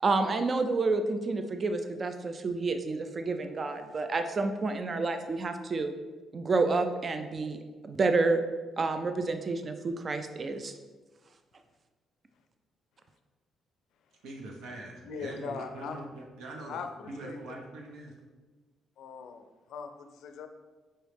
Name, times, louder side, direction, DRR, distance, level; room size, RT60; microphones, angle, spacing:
voice 1, 0.0-5.9 6.3-8.4 8.8-10.7, right 3 dB, 40° right, 7 dB, 0.3 m, -29 dB
voice 2, 14.2-18.1, right 2 dB, 80° right, 1 dB, 0.8 m, -43 dB
voice 3, 15.0-16.0 16.7-17.4 19.0-19.4 19.7-20.5, left 5 dB, 80° left, 7 dB, 0.4 m, -40 dB
5.4 x 3.0 x 3.2 m, 1.3 s
cardioid pair, 90°, 0 cm